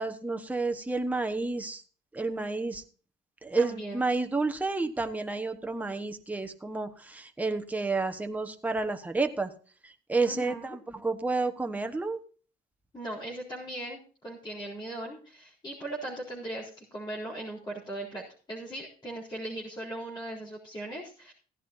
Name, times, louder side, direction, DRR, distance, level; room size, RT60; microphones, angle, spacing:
voice 1, 0.0-1.8 2.1-2.8 3.4-9.5 9.8-12.2, right 3 dB, 10° right, 5 dB, 1.2 m, -30 dB
voice 2, 3.6-4.0 10.2-10.8 12.9-14.0 14.2-18.2 18.5-21.3, right 1 dB, 25° left, -4 dB, 4.0 m, -38 dB
16.5 x 11.0 x 2.7 m, 0.39 s
cardioid pair, 110°, 17 cm